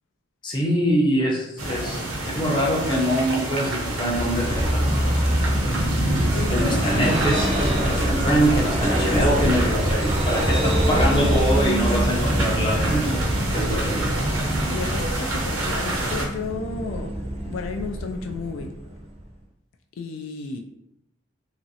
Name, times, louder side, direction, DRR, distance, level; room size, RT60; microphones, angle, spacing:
voice 1, 0.4-4.9 6.5-13.2 13.5-14.2, equal, 25° left, -2 dB, 0.5 m, -24 dB
sound 1, 1.6-16.3, right 1 dB, 85° right, 0.7 m, -27 dB
Vehicle, 3.8-19.3, equal, 30° right, 0.5 m, -26 dB
voice 2, 6.0-6.9 7.8-8.2 14.7-18.7 20.0-20.6, left 4 dB, 75° left, 5 dB, 0.3 m, -33 dB
3.0 x 2.5 x 2.7 m, 0.85 s
head